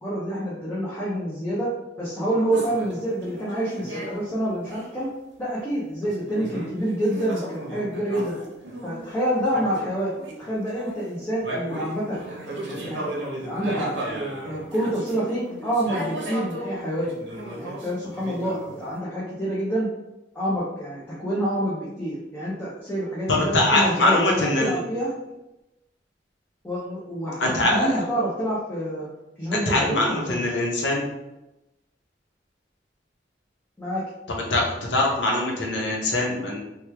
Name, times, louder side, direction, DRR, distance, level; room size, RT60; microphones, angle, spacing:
voice 1, 0.0-5.1 5.4-8.3 8.8-10.1 10.4-12.2 12.7-13.1 13.4-13.9 14.4-17.1 17.6-19.9 20.3-25.1 26.6-29.1 29.4-30.5 33.8-34.0, right 1 dB, 10° left, -8 dB, 0.6 m, -27 dB
sound 1, 2.5-4.3 4.6-5.0 6.0-9.0 9.5-10.5 10.7-16.7 17.0-19.0, right 1 dB, 90° right, 0.8 m, -35 dB
voice 2, 23.3-24.8 27.4-27.9 29.5-31.0 34.3-34.6 34.9-36.6, left 2 dB, 90° left, -1 dB, 0.8 m, -22 dB
3.0 x 2.3 x 3.3 m, 0.95 s
head